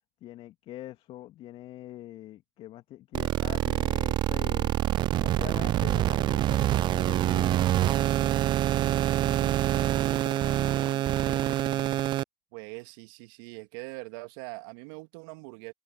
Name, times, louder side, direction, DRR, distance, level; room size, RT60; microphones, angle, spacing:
voice 1, 0.2-4.8 5.2-8.5 9.3-12.0, left 14 dB, 50° left, 3.0 m, -45 dB
sound 1, 3.1-12.2, right 13 dB, 40° right, 0.4 m, -26 dB
voice 2, 12.5-15.7, right 28 dB, 65° right, 2.7 m, -42 dB
hypercardioid pair, 80°, 12 cm